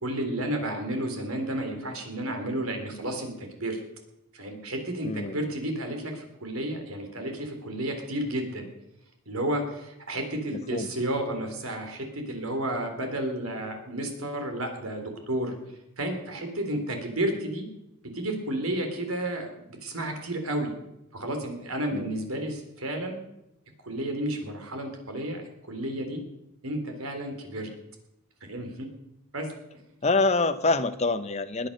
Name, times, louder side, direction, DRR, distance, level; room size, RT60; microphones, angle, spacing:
voice 1, 0.0-3.8 4.3-8.7 9.3-17.7 18.1-20.7 21.1-23.2 23.8-26.2 26.6-27.7 28.4-28.9 29.3-29.5, right 1 dB, 80° right, 5 dB, 3.5 m, -32 dB
voice 2, 5.0-5.5 10.7-10.9 21.9-22.1 30.0-31.7, left 3 dB, 30° left, 10 dB, 0.9 m, -26 dB
20.5 x 8.9 x 6.6 m, 0.88 s
head